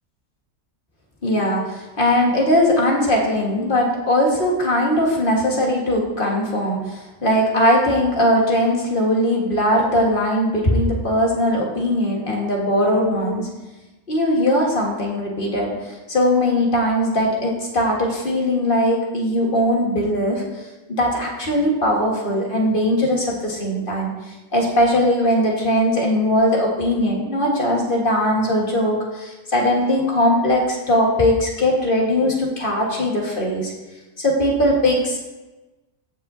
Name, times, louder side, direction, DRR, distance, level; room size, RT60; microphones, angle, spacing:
voice 1, 1.2-13.4 14.1-15.7 16.1-20.4 21.0-24.1 24.5-33.7 34.2-35.2, left 1 dB, 40° left, -2 dB, 1.7 m, -20 dB
15.0 x 5.5 x 2.7 m, 1.1 s
omnidirectional pair, 1.4 m